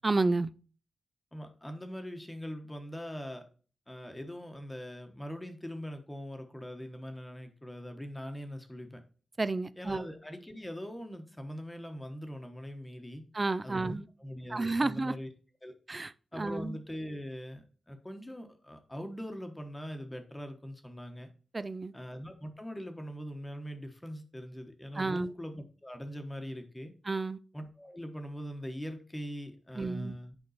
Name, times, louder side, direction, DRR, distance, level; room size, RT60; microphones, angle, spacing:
voice 1, 0.0-0.5 9.4-10.1 13.3-14.1 14.5-15.1 15.9-16.8 21.5-21.9 24.9-25.3 27.1-27.4 29.8-30.2, right 3 dB, 25° right, 0.4 m, -31 dB
voice 2, 1.3-3.4 3.9-9.0 9.8-13.3 13.6-15.3 15.6-15.7 16.3-21.3 21.9-26.9 27.5-30.4, equal, 10° left, 1.2 m, -42 dB
9.6 x 5.3 x 4.1 m
wide cardioid pair, 145°, 0 cm